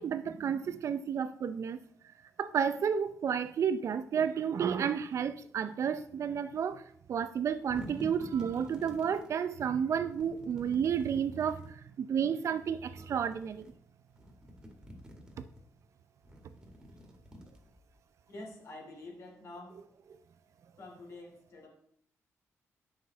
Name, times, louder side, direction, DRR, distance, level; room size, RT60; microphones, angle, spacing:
voice 1, 0.0-1.8 2.4-6.8 7.1-13.7, right 7 dB, 60° right, 0.6 m, -31 dB
sound 1, 7.5-9.3 10.1-11.7 12.7-13.7 14.1-15.6 16.2-18.0, equal, 15° right, 2.0 m, -49 dB
voice 2, 18.3-19.8 20.8-21.7, left 2 dB, 60° left, 2.9 m, -47 dB
9.2 x 6.6 x 4.1 m
cardioid pair, 100°, 6 cm